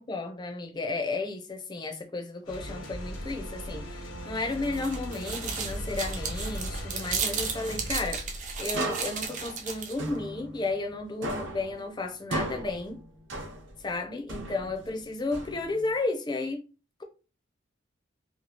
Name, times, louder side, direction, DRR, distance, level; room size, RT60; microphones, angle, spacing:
voice 1, 0.0-8.3 8.6-13.0 13.8-16.6, left 3 dB, 20° left, 0.4 m, -33 dB
sound 1, 2.5-11.0, equal, 80° left, 0.8 m, -38 dB
sound 2, 4.4-10.1, right 5 dB, 40° right, 0.4 m, -34 dB
sound 3, 8.7-11.0 11.2-13.9 14.3-15.9, right 1 dB, 65° right, 0.8 m, -37 dB
2.9 x 2.3 x 2.7 m
head